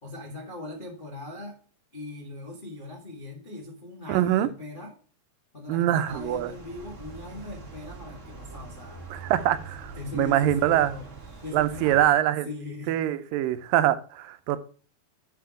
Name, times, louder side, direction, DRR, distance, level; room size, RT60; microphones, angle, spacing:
voice 1, 0.0-1.6 1.9-4.9 5.5-9.1 9.9-11.1 11.4-12.0 12.4-13.0, left 2 dB, 40° left, -1 dB, 0.7 m, -40 dB
voice 2, 4.1-4.5 5.7-6.5 9.1-10.9 11.5-12.5 12.9-14.6, right 12 dB, 85° right, 12 dB, 2.4 m, -24 dB
sound 1, 6.0-12.1, right 4 dB, 45° right, 0.9 m, -43 dB
8.2 x 5.8 x 4.8 m, 0.40 s
omnidirectional pair, 3.9 m